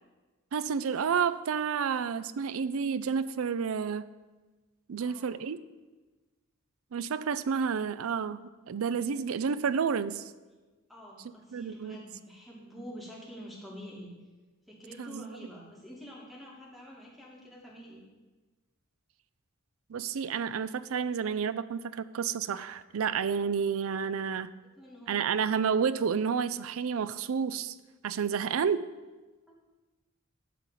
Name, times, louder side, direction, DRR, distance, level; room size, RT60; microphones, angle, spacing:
voice 1, 0.5-4.1 4.9-5.6 6.9-10.3 11.5-12.0 15.0-15.2 19.9-24.5 25.1-27.8 28.0-28.8, right 6 dB, 85° right, 15 dB, 0.4 m, -30 dB
voice 2, 5.0-5.3 10.9-14.1 14.7-18.0 24.8-25.4 29.5-29.6, equal, ahead, -4 dB, 2.3 m, -47 dB
11.5 x 4.1 x 7.4 m, 1.2 s
head